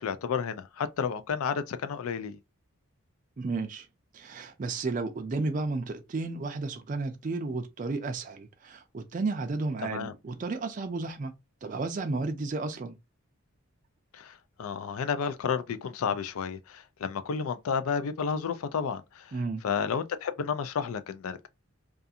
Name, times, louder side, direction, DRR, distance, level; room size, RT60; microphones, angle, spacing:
voice 1, 0.0-2.4 9.8-10.1 14.1-14.3 14.6-19.2 19.6-21.5, left 6 dB, 75° left, 0.4 m, -31 dB
voice 2, 3.4-3.9 4.1-11.3 11.6-13.0 19.3-19.6, right 3 dB, 35° right, 0.3 m, -33 dB
2.4 x 2.4 x 2.6 m
head